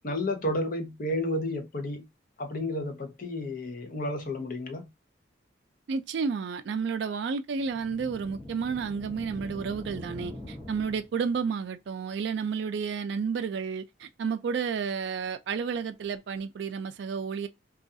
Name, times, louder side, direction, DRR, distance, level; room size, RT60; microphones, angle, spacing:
voice 1, 0.0-2.0 2.4-4.9, left 1 dB, 45° left, 0.6 m, -31 dB
voice 2, 5.9-17.5, right 5 dB, 65° right, 0.3 m, -31 dB
sound 1, 7.6-11.4, left 1 dB, 10° left, 0.7 m, -43 dB
2.3 x 2.3 x 2.6 m
head